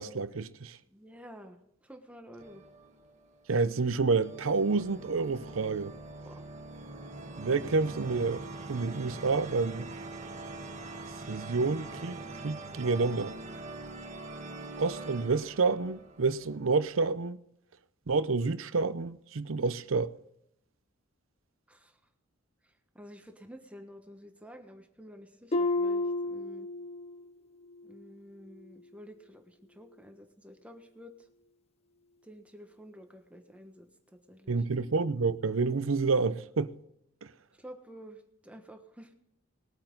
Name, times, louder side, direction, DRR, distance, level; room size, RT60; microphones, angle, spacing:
voice 1, 0.0-0.8 3.5-5.9 7.4-8.4 8.7-9.9 11.3-12.2 12.4-13.4 14.8-17.4 18.1-20.1 34.5-36.7 37.2-37.3, right 4 dB, 85° right, 0.7 m, -29 dB
voice 2, 0.9-2.6 6.2-6.5 21.7-22.0 22.6-26.7 27.8-31.1 32.2-34.6 37.6-39.1, equal, 5° right, 1.3 m, -50 dB
sound 1, 2.4-3.6 4.2-16.8, right 2 dB, 35° right, 1.7 m, -43 dB
Harp, 25.5-27.3 27.6-28.0 28.6-28.7, left 2 dB, 30° left, 0.6 m, -31 dB
20.5 x 8.8 x 3.9 m
head